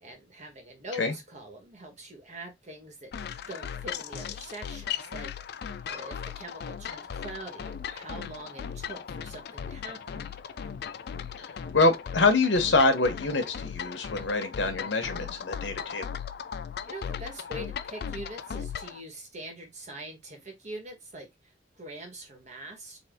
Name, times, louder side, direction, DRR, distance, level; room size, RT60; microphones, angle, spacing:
voice 1, 0.0-5.3 5.9-10.3 16.9-23.0, right 1 dB, 40° right, 1.4 m, -43 dB
sound 1, 3.1-19.0, left 7 dB, 60° left, 0.4 m, -37 dB
voice 2, 11.4-16.0, left 3 dB, 80° left, 1.0 m, -25 dB
4.1 x 2.5 x 3.6 m
head